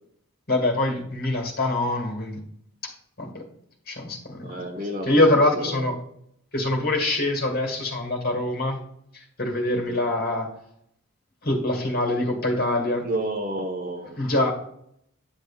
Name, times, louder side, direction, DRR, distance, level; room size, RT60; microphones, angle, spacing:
voice 1, 0.5-2.4 2.8-2.9 3.2-3.4 3.9-4.6 5.0-5.9 6.5-8.8 9.4-10.5 11.4-13.0 14.2-14.5, left 1 dB, 45° left, 0 dB, 1.9 m, -24 dB
voice 2, 4.4-6.0 9.7-10.0 13.0-14.2, right 1 dB, 40° right, 2 dB, 1.3 m, -31 dB
9.5 x 6.4 x 2.5 m, 0.71 s
head